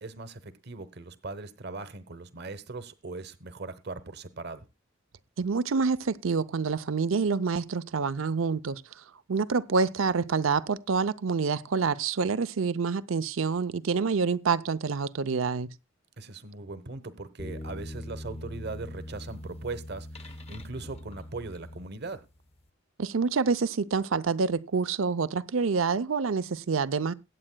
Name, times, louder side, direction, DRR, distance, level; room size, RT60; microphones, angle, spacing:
voice 1, 0.0-4.7 16.2-22.2, right 3 dB, 55° right, 1.0 m, -39 dB
voice 2, 5.4-8.8 9.3-15.7 23.0-27.1, right 5 dB, 80° right, 0.6 m, -27 dB
sound 1, 17.4-22.3, left 1 dB, 30° left, 1.0 m, -41 dB
21.5 x 8.9 x 2.2 m
head